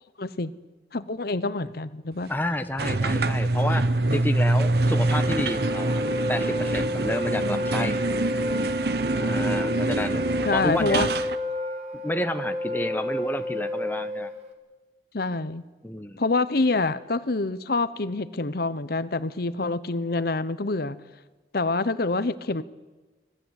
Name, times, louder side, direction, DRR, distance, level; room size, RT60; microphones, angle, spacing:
voice 1, 0.2-0.5 0.9-2.3 10.4-11.1 15.1-15.6 16.2-21.0 21.5-22.6, left 3 dB, 60° left, 13 dB, 0.9 m, -26 dB
voice 2, 2.3-3.8 4.1-6.0 6.3-8.0 9.2-10.3 10.5-11.1 12.0-14.3 15.8-16.2, left 1 dB, 10° left, 8 dB, 1.0 m, -30 dB
sound 1, 2.8-11.4, right 2 dB, 60° right, 1.0 m, -25 dB
Wind instrument woodwind instrument, 4.6-14.5, left 1 dB, 40° right, 3.2 m, -31 dB
26.0 x 19.0 x 8.2 m, 1.2 s
head